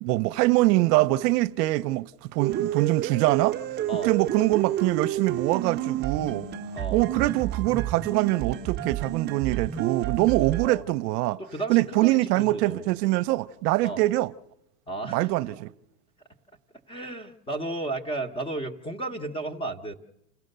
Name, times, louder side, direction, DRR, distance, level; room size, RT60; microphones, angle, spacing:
voice 1, 0.0-3.6 3.9-6.5 6.9-11.4 11.7-14.3 15.0-15.7, right 18 dB, 75° right, 0.7 m, -24 dB
sound 1, 2.4-10.7, right 12 dB, 20° right, 0.8 m, -30 dB
voice 2, 10.4-10.8 11.4-12.8 13.8-14.0 14.9-15.3 16.9-19.9, right 2 dB, 10° left, 1.1 m, -33 dB
29.0 x 16.5 x 6.7 m
supercardioid pair, 145°, 49 cm